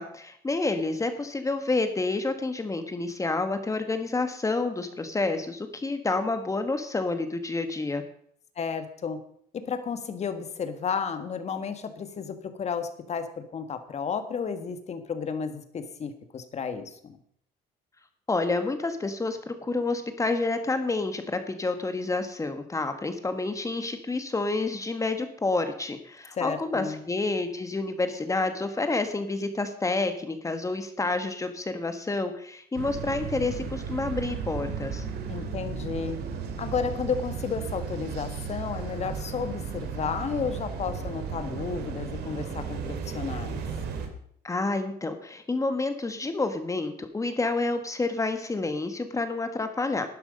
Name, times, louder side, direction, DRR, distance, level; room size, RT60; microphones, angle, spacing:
voice 1, 0.0-8.0 18.3-35.0 44.4-50.1, left 3 dB, 20° left, 8 dB, 1.5 m, -29 dB
voice 2, 8.5-9.2 9.5-17.2 26.3-27.0 35.3-36.2 36.6-43.6, left 6 dB, 40° left, 9 dB, 1.7 m, -32 dB
sound 1, 32.7-44.1, right 6 dB, 75° right, 2.3 m, -35 dB
12.0 x 10.5 x 5.4 m, 0.67 s
cardioid pair, 110°, 17 cm